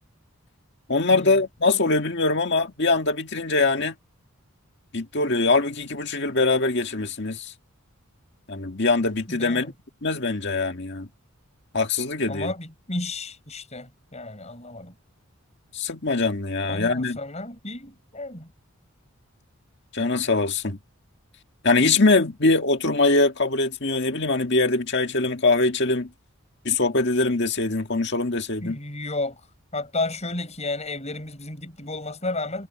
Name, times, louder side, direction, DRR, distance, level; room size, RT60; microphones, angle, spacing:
voice 1, 0.9-4.0 4.9-7.5 8.5-9.7 10.0-11.1 11.7-12.5 15.7-17.2 19.9-20.8 21.6-26.1 26.7-28.8, left 3 dB, 50° left, 1.9 m, -22 dB
voice 2, 9.3-9.7 12.3-14.9 16.7-18.5 28.6-32.7, left 2 dB, 30° left, 7.4 m, -32 dB
head